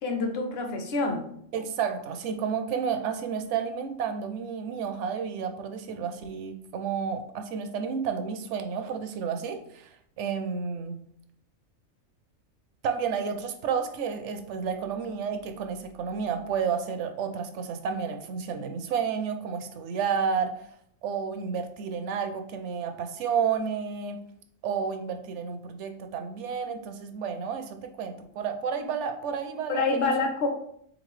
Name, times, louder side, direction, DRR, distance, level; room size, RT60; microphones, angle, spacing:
voice 1, 0.0-1.3 29.7-30.5, left 3 dB, 55° left, 4 dB, 0.9 m, -27 dB
voice 2, 1.5-11.0 12.8-20.6 21.0-24.2 24.6-30.1, right 6 dB, 70° right, 7 dB, 0.8 m, -31 dB
3.9 x 3.8 x 3.1 m, 0.68 s
omnidirectional pair, 1.4 m